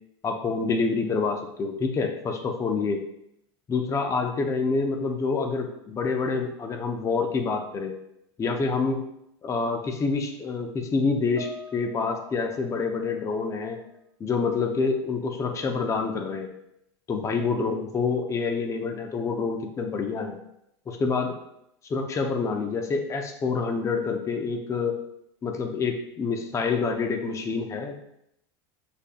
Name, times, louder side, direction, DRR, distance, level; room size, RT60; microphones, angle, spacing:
voice 1, 0.2-3.0 3.7-7.9 8.4-9.0 9.4-13.8 14.2-16.5 17.1-20.4 20.9-21.4 21.9-24.9 25.4-27.9, left 4 dB, 20° left, 4 dB, 0.6 m, -27 dB
Piano, 11.4-14.0 14.3-14.6 15.4-15.5, left 1 dB, 50° right, 1.4 m, -46 dB
6.4 x 3.6 x 2.2 m, 0.77 s
supercardioid pair, 110°, 14 cm